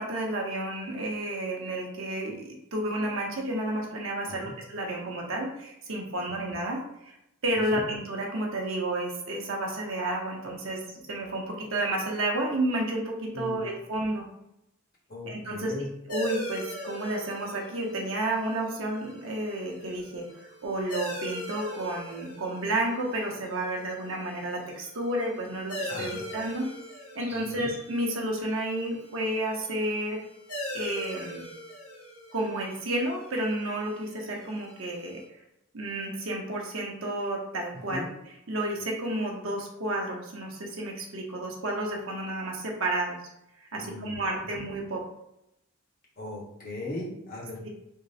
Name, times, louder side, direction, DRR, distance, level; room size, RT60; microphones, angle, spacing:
voice 1, 0.0-7.2 7.4-14.3 15.2-15.7 16.1-26.7 27.1-30.2 30.7-31.5 32.3-35.2 35.7-38.1 38.5-43.2 43.7-45.0 47.6-47.7, right 1 dB, 60° right, -1 dB, 0.8 m, -31 dB
voice 2, 15.1-15.9 25.9-26.3 27.3-27.7 37.9-38.1 43.8-44.6 46.2-47.7, left 1 dB, 40° left, -5 dB, 1.1 m, -38 dB
sound 1, 16.1-35.2, left 1 dB, 85° left, 0.9 m, -41 dB
sound 2, 25.8-26.5 26.8-27.9, equal, 10° right, 0.4 m, -48 dB
3.6 x 2.1 x 4.1 m, 0.83 s
head